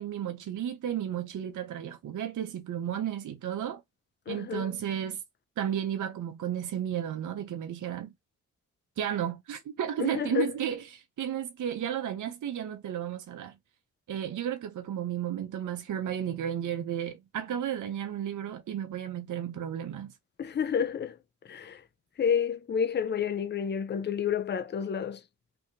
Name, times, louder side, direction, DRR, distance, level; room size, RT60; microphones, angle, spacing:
voice 1, 0.0-3.8 4.3-5.2 5.6-8.1 9.0-13.5 14.1-20.1, right 10 dB, 60° right, 0.6 m, -33 dB
voice 2, 4.3-4.7 10.0-10.5 20.4-21.2 21.5-21.8 22.2-25.2, left 7 dB, 30° left, 0.5 m, -30 dB
2.7 x 2.6 x 2.6 m
supercardioid pair, 50°, 34 cm